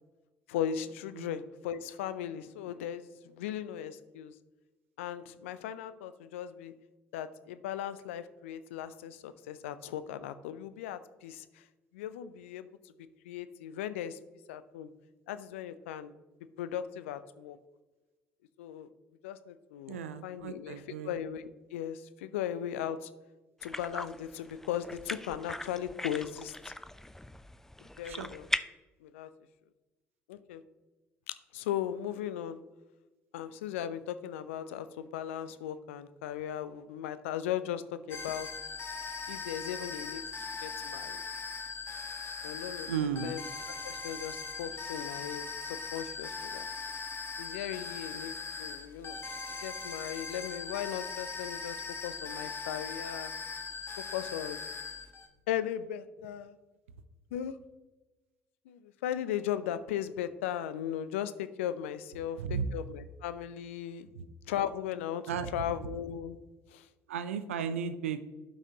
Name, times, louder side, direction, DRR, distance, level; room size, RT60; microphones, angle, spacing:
voice 1, 0.5-4.3 5.0-6.7 7.1-11.6 11.9-12.7 13.2-14.2 14.5-14.9 15.3-16.1 16.6-17.6 18.6-18.9 19.2-23.1 23.6-26.6 28.0-28.5 29.0-29.3 30.3-30.6 31.5-32.6 33.3-38.5 39.3-40.2 40.6-41.2 42.4-43.4 43.8-46.7 47.4-48.3 48.6-49.2 49.5-53.3 54.1-54.6 55.5-56.5 57.3-57.6 58.7-62.4 62.7-64.1 64.5-65.2 65.5-66.4 66.7-66.9, left 10 dB, 75° left, 13 dB, 0.4 m, -37 dB
voice 2, 19.9-21.2 28.1-28.3 42.9-43.4 62.4-62.7 64.1-64.3 65.3-65.6 67.1-68.3, right 7 dB, 80° right, 12 dB, 0.5 m, -35 dB
sound 1, 23.6-28.6, left 1 dB, 5° left, 0.4 m, -39 dB
sound 2, 38.1-55.3, left 4 dB, 35° left, 1.2 m, -40 dB
12.0 x 5.7 x 2.8 m, 1.1 s
figure-of-eight pair, 55°, 7 cm